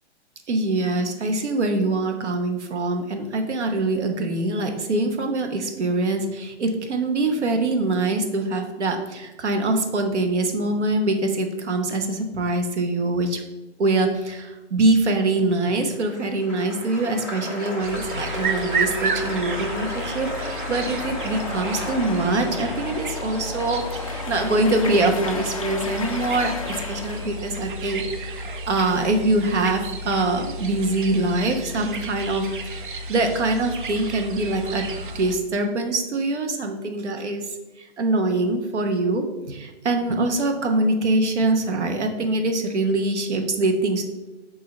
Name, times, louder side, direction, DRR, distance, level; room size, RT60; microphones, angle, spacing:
voice 1, 0.5-13.4 13.8-34.9 35.1-44.0, right 2 dB, 80° right, 4 dB, 1.1 m, -24 dB
Applause, 15.5-25.9 26.2-26.8, left 2 dB, 5° right, 1.3 m, -36 dB
sound 1, 17.8-35.4, right 2 dB, 45° right, 0.6 m, -32 dB
sound 2, 19.2-27.5, left 4 dB, 30° left, 0.4 m, -34 dB
6.3 x 2.8 x 5.3 m, 1.1 s
hypercardioid pair, 160°, 34 cm